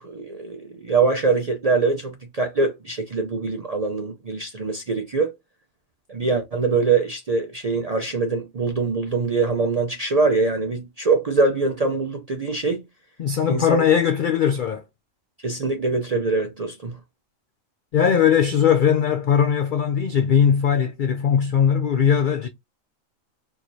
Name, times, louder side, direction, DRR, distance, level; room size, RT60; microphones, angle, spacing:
voice 1, 0.0-5.3 6.1-12.8 13.5-13.9 15.4-17.0, right 4 dB, 55° right, 0.4 m, -23 dB
voice 2, 13.2-14.8 17.9-22.5, left 8 dB, 80° left, 0.4 m, -19 dB
4.5 x 2.9 x 2.7 m
omnidirectional pair, 1.4 m